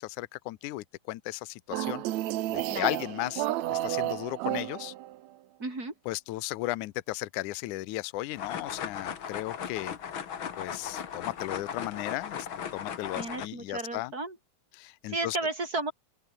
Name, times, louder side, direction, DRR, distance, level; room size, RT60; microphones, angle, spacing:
voice 1, 0.0-2.0 2.5-4.9 6.1-10.0 10.6-12.5 12.7-14.1 14.7-15.4, left 18 dB, 75° left, 2.2 m, -35 dB
sound 1, 1.7-5.2, right 14 dB, 70° right, 2.0 m, -31 dB
voice 2, 2.7-3.1 5.6-5.9 13.1-14.4 15.1-15.9, right 2 dB, 25° right, 6.2 m, -33 dB
sound 2, 8.3-13.5, left 8 dB, 45° left, 2.1 m, -37 dB
open air
omnidirectional pair, 3.7 m